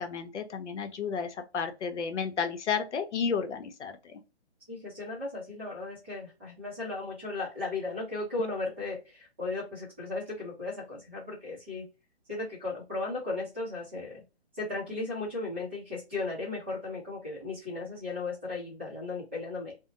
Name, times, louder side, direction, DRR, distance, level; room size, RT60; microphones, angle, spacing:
voice 1, 0.0-4.2, left 6 dB, 80° left, 0.7 m, -32 dB
voice 2, 4.7-11.9 12.3-14.2 14.5-19.7, left 3 dB, 10° right, 0.5 m, -36 dB
2.7 x 2.0 x 2.5 m
hypercardioid pair, 160°, 34 cm